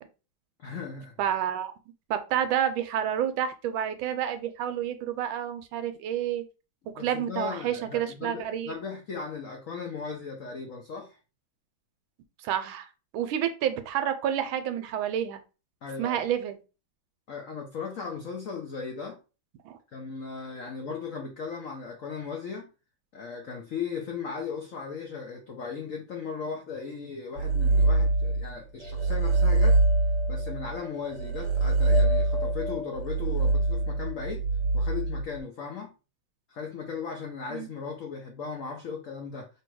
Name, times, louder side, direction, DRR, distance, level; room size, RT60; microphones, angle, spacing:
voice 1, 0.6-1.1 7.0-11.2 15.8-16.2 17.3-19.2 19.9-22.7 23.1-29.8 30.3-34.4 34.7-35.9 36.5-39.5, left 5 dB, 70° left, 0.7 m, -37 dB
voice 2, 1.2-1.7 2.1-6.4 6.9-8.8 12.4-12.9 13.1-15.4 16.0-16.6 19.6-19.8 37.5-37.7, right 10 dB, 80° right, 1.3 m, -29 dB
sound 1, 27.4-28.5 28.8-35.4, right 2 dB, 50° right, 1.0 m, -24 dB
3.2 x 2.7 x 4.5 m
omnidirectional pair, 2.3 m